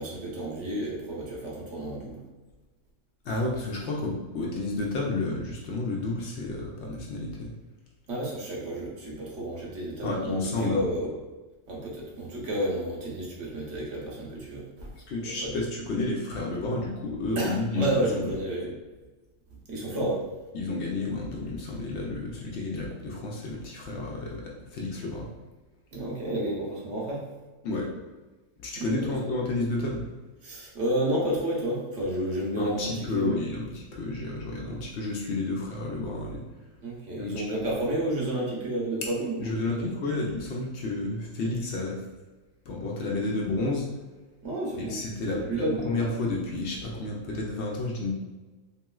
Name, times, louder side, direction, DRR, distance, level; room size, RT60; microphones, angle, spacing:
voice 1, 0.0-2.2 8.1-11.1 11.7-14.9 15.2-15.6 17.4-18.8 19.7-20.2 25.9-27.2 28.8-29.2 30.4-33.4 34.7-34.8 36.8-39.5 39.8-40.1 44.4-45.9, right 1 dB, 70° right, -3 dB, 1.1 m, -31 dB
voice 2, 3.3-7.5 10.0-10.8 15.1-18.3 20.5-25.3 27.6-27.9 28.6-30.0 32.6-36.4 37.2-37.4 39.4-42.0 42.7-43.8 44.8-48.1, left 2 dB, 65° left, -2 dB, 0.8 m, -31 dB
3.0 x 2.9 x 2.3 m, 1.2 s
omnidirectional pair, 1.4 m